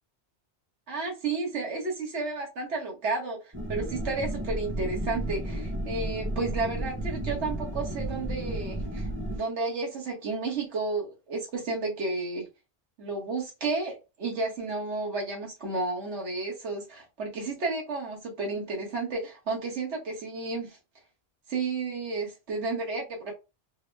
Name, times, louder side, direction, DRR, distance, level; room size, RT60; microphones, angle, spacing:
voice 1, 0.9-12.5 13.0-20.8 21.5-23.3, right 3 dB, 90° right, 1.5 m, -32 dB
sound 1, 3.5-9.4, right 1 dB, 15° right, 0.5 m, -33 dB
3.6 x 2.1 x 3.2 m
omnidirectional pair, 1.1 m